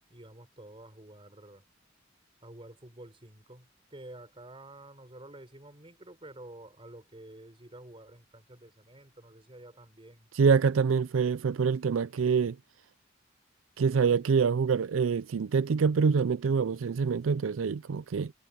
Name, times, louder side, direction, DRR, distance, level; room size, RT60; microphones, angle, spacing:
voice 1, 0.1-1.6 2.4-10.3 13.9-14.2, right 1 dB, 30° right, 4.4 m, -50 dB
voice 2, 10.3-12.6 13.8-18.3, right 5 dB, 90° right, 0.4 m, -25 dB
head